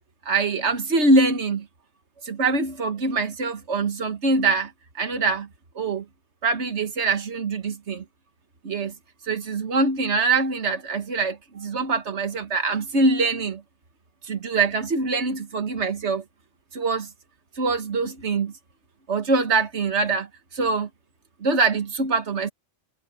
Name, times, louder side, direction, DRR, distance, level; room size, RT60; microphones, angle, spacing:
voice 1, 0.3-1.7 2.2-5.5 5.8-6.1 6.4-8.0 8.6-8.9 9.2-13.6 14.2-16.2 16.7-17.1 17.6-18.5 19.1-20.9 21.4-22.5, right 3 dB, 70° right, 1.8 m, -24 dB
omnidirectional pair, 1.2 m